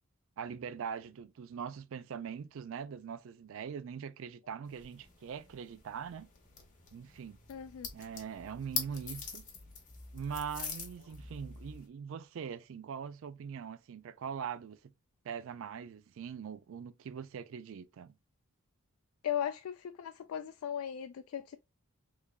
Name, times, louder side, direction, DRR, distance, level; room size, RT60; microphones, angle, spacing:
voice 1, 0.4-6.3 6.9-7.4 7.9-9.4 10.1-14.9 15.2-18.1, right 7 dB, 60° right, 0.3 m, -42 dB
sound 1, 4.6-11.9, left 6 dB, 35° left, 0.9 m, -44 dB
sound 2, 6.5-11.8, left 1 dB, 5° left, 0.7 m, -53 dB
voice 2, 7.5-7.9 19.2-21.6, left 9 dB, 70° left, 0.3 m, -37 dB
3.6 x 3.3 x 2.2 m
head